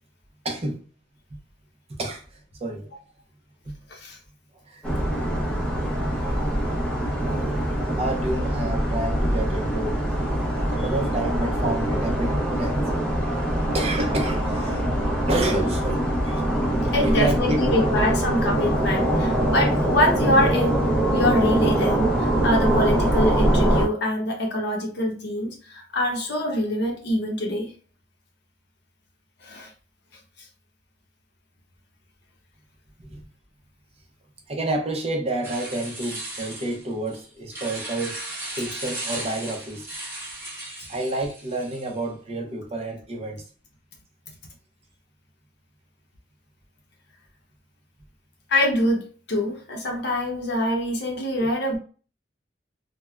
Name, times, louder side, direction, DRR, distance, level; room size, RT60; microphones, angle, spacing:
voice 1, 0.4-0.8 1.3-1.4 1.9-2.9 3.6-3.8 4.6-4.9 7.9-10.0 10.6-12.9 13.7-16.4 17.0-18.0 33.0-33.2 34.5-38.2 38.6-39.9 40.9-43.4, right 1 dB, 35° right, 0.6 m, -29 dB
sound 1, 4.8-23.9, right 1 dB, 5° left, 0.7 m, -23 dB
voice 2, 16.9-20.8 21.1-27.7 29.4-29.7 48.5-51.8, left 1 dB, 60° left, 0.7 m, -25 dB
sound 2, 35.4-42.0, right 1 dB, 15° right, 1.0 m, -36 dB
3.4 x 2.1 x 2.3 m
head